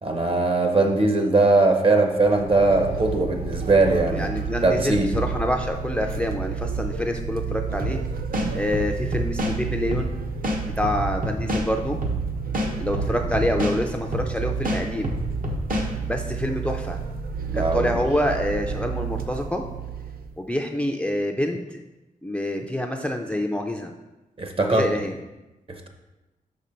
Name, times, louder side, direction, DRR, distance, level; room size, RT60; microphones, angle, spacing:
voice 1, 0.0-4.3 4.6-5.2 13.1-13.2 17.5-18.0 24.4-24.9 25.7-25.9, right 2 dB, 40° right, 4 dB, 0.8 m, -20 dB
sound 1, 2.1-20.4, right 6 dB, 85° right, 0.5 m, -31 dB
voice 2, 4.1-8.0 8.5-10.2 10.8-12.0 12.8-15.2 16.1-17.0 17.5-19.6 20.4-21.8 22.2-23.9 24.6-25.1, left 1 dB, 5° left, 3 dB, 0.4 m, -27 dB
sound 2, 7.8-8.0 8.3-9.5 9.9-10.1 10.4-11.6 12.0-12.2 12.5-13.8 14.1-14.3 14.6-15.9, equal, 65° right, 1.0 m, -26 dB
6.1 x 4.2 x 5.2 m, 1.0 s
wide cardioid pair, 130°, 15 cm